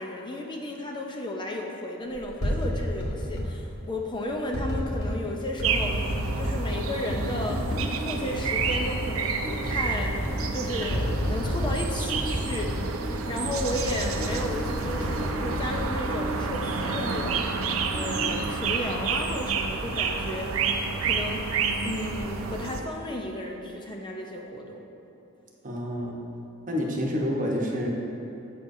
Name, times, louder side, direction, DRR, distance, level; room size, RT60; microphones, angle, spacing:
voice 1, 0.0-6.0 6.4-7.7 8.0-10.2 10.5-17.5 17.9-21.4 21.8-24.8, left 1 dB, 20° left, 1 dB, 0.6 m, -33 dB
sound 1, 2.2-3.5 4.5-5.2 5.6-6.6 7.1-7.9 8.3-9.1 9.3-9.4 9.7-10.5 10.9-11.8 12.1-12.9 13.4-16.5 16.9-17.4, equal, 85° left, 2.1 m, -31 dB
sound 2, 5.6-22.8, right 4 dB, 75° right, 0.6 m, -30 dB
sound 3, 7.7-18.7, right 1 dB, 10° right, 1.0 m, -38 dB
voice 2, 25.6-26.1 26.7-27.9, equal, 40° right, -1 dB, 1.1 m, -28 dB
13.0 x 7.5 x 2.7 m, 3.0 s
head